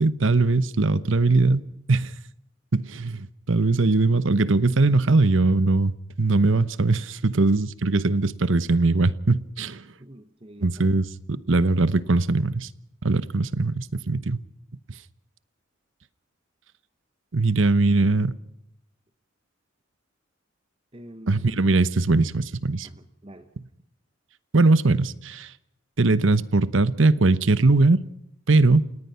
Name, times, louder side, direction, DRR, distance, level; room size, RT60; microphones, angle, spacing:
voice 1, 0.0-1.6 1.9-2.1 2.7-9.9 10.6-12.7 13.0-14.4 17.3-18.4 21.3-22.9 24.5-25.5 26.0-28.0 28.5-28.9, right 3 dB, 75° right, 1.0 m, -21 dB
voice 2, 10.0-10.9 20.9-21.6 22.8-23.5, right 1 dB, 25° right, 1.1 m, -46 dB
29.0 x 18.5 x 5.7 m
head